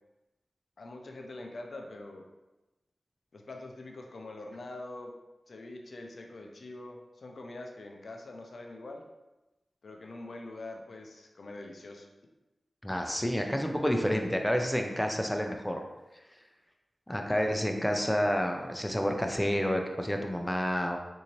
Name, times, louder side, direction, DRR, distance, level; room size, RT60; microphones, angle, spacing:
voice 1, 0.8-2.3 3.3-5.1 5.5-9.0 9.8-12.1, left 2 dB, 70° left, 2 dB, 0.4 m, -44 dB
voice 2, 12.8-15.8 17.1-21.0, equal, 5° left, 3 dB, 0.5 m, -29 dB
3.9 x 2.7 x 3.0 m, 1.0 s
cardioid pair, 50°, 0 cm